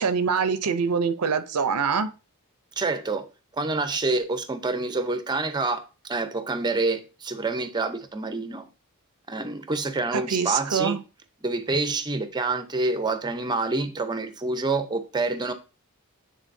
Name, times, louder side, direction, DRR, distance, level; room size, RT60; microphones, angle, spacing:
voice 1, 0.0-2.1 10.1-11.0, right 6 dB, 85° right, 0.6 m, -24 dB
voice 2, 2.8-3.3 3.5-8.7 9.3-11.0 11.4-15.5, right 3 dB, 20° right, 0.6 m, -27 dB
9.2 x 3.9 x 2.6 m
head